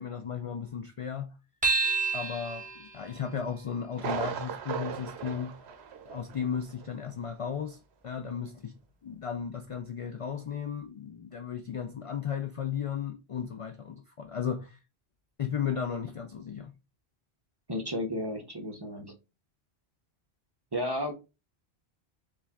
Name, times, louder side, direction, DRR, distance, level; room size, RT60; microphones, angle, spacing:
voice 1, 0.0-1.3 2.1-5.6 6.1-7.8 8.0-8.7 9.0-14.8 15.4-16.7, left 7 dB, 60° left, 0.3 m, -35 dB
sound 1, 1.6-6.4, right 4 dB, 10° right, 0.9 m, -34 dB
Thunder, 3.9-6.5 6.8-6.9 7.4-7.5, right 6 dB, 80° right, 0.9 m, -37 dB
voice 2, 17.7-19.1 20.7-21.1, left 1 dB, 30° right, 0.6 m, -33 dB
4.8 x 2.4 x 3.4 m
omnidirectional pair, 1.1 m